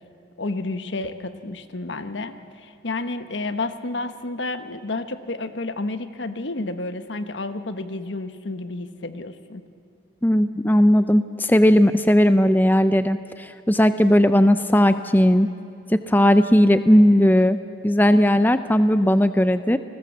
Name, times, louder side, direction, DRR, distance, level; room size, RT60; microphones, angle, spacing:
voice 1, 0.4-9.6, left 2 dB, 70° left, 10 dB, 1.2 m, -30 dB
voice 2, 10.2-15.5 15.9-17.6 17.8-19.8, equal, 10° left, 11 dB, 0.5 m, -17 dB
30.0 x 20.5 x 7.3 m, 2.6 s
head